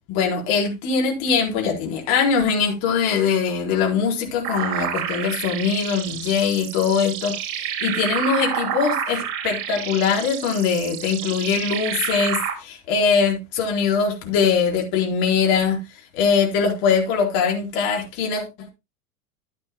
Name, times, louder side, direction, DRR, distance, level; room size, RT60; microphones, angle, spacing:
voice 1, 0.1-15.8 16.1-18.7, left 6 dB, 45° left, 4.4 m, -22 dB
sound 1, 4.4-12.5, right 9 dB, 40° right, 3.8 m, -29 dB
14.5 x 9.8 x 2.2 m
figure-of-eight pair, 90°, 47 cm